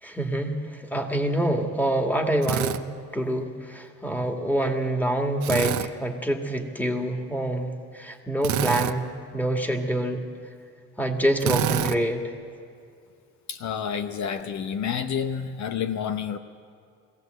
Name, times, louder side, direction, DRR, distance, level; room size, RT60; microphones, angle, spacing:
voice 1, 0.0-2.8 3.1-10.3 11.0-12.3, right 1 dB, 5° left, 3 dB, 2.2 m, -26 dB
Drill, 2.4-2.8 5.4-5.9 8.4-9.0 11.4-12.0, right 12 dB, 70° right, 0.7 m, -26 dB
voice 2, 13.5-16.4, left 7 dB, 65° left, 8 dB, 0.9 m, -29 dB
22.0 x 16.5 x 8.0 m, 2.3 s
cardioid pair, 90°, 30 cm